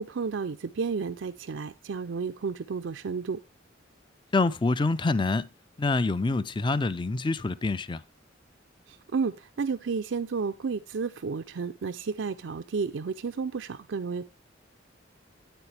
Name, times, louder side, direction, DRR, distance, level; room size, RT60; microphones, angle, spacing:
voice 1, 0.0-3.4 8.9-14.2, right 5 dB, 70° right, 0.5 m, -32 dB
voice 2, 4.3-5.5 5.8-8.0, left 3 dB, 25° left, 0.4 m, -26 dB
9.0 x 8.7 x 3.3 m
head